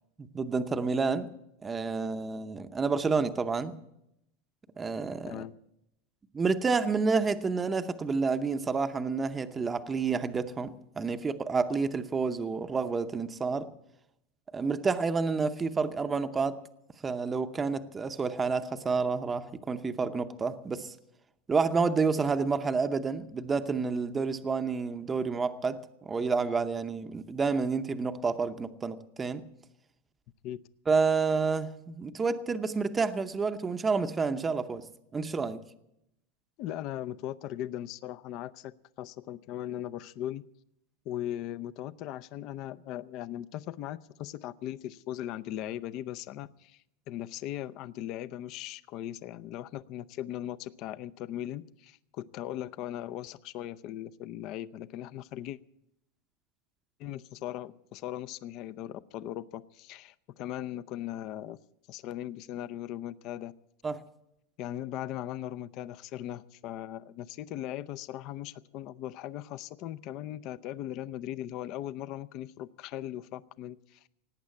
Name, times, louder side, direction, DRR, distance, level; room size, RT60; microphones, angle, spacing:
voice 1, 0.2-1.3 1.6-3.8 4.8-5.4 6.3-13.7 14.5-16.6 17.0-20.9 21.5-29.4 30.9-34.8 35.1-35.6 63.8-64.0, right 4 dB, 15° right, 0.7 m, -29 dB
voice 2, 36.6-38.7 39.0-40.4 41.1-55.6 57.0-61.6 61.9-63.5 64.6-74.1, left 12 dB, 45° left, 0.6 m, -39 dB
18.0 x 8.7 x 8.3 m
supercardioid pair, 145°, 0 cm